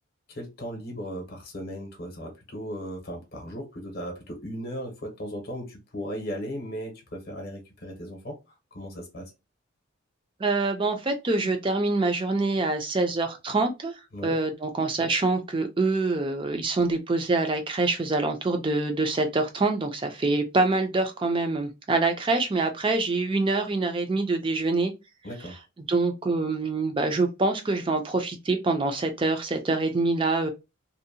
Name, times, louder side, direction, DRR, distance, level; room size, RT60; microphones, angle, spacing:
voice 1, 0.3-8.3 8.7-9.3 14.1-14.4 25.2-25.6, equal, 45° left, 0.7 m, -36 dB
voice 2, 10.4-24.9 25.4-25.5 25.8-30.5, right 3 dB, 25° right, 0.4 m, -25 dB
2.6 x 2.1 x 2.6 m
head